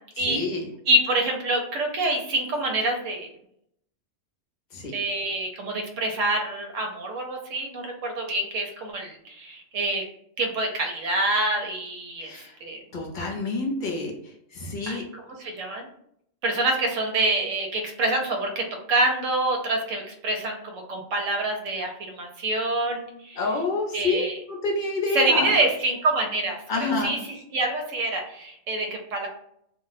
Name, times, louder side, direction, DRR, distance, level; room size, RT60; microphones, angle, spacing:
voice 1, 0.2-0.7 4.7-4.9 12.2-12.5 12.9-15.0 23.4-24.2 24.5-25.5 26.7-27.2, left 3 dB, 50° left, 0 dB, 0.7 m, -28 dB
voice 2, 0.9-3.3 4.9-10.0 10.4-12.3 12.6-12.8 14.9-15.0 15.4-15.9 16.4-20.6 20.9-23.4 23.9-24.4 25.1-29.3, right 2 dB, 85° right, 2 dB, 1.0 m, -26 dB
2.4 x 2.1 x 3.9 m, 0.72 s
omnidirectional pair, 1.3 m